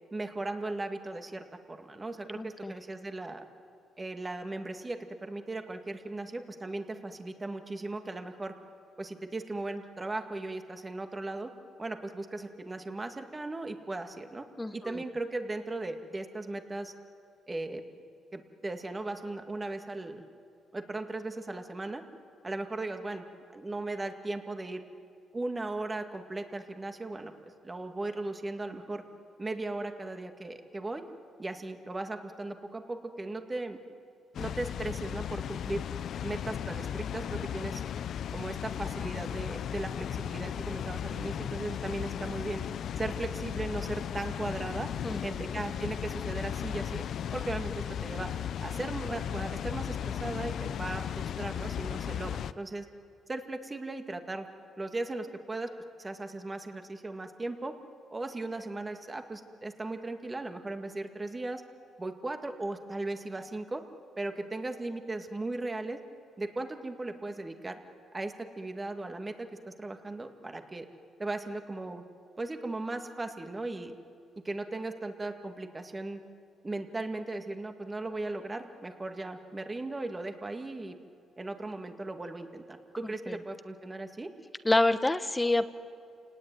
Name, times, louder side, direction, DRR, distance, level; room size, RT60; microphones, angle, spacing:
voice 1, 0.1-3.4 4.0-8.5 9.0-11.5 11.8-14.5 14.7-16.9 17.5-17.8 18.3-20.2 20.7-22.0 22.4-23.2 23.5-24.8 25.3-29.0 29.4-31.0 31.4-33.8 34.4-35.9 36.2-37.8 38.3-42.6 43.0-44.9 45.2-47.0 47.3-48.3 48.6-52.9 53.3-54.5 54.8-55.7 56.0-57.8 58.1-61.6 62.0-63.8 64.2-66.0 66.4-67.8 68.1-70.9 71.2-72.0 72.4-73.9 74.4-76.2 76.6-81.0 81.4-84.3, right 2 dB, 20° right, 6 dB, 2.1 m, -37 dB
voice 2, 2.3-2.7 14.6-15.0 45.0-45.2 45.5-45.6 83.3-83.4 84.6-85.7, left 2 dB, 15° left, 11 dB, 1.1 m, -27 dB
Water, 34.3-52.5, left 9 dB, 65° left, 0.6 m, -36 dB
28.5 x 19.0 x 9.4 m, 2.4 s
cardioid pair, 90°, 0 cm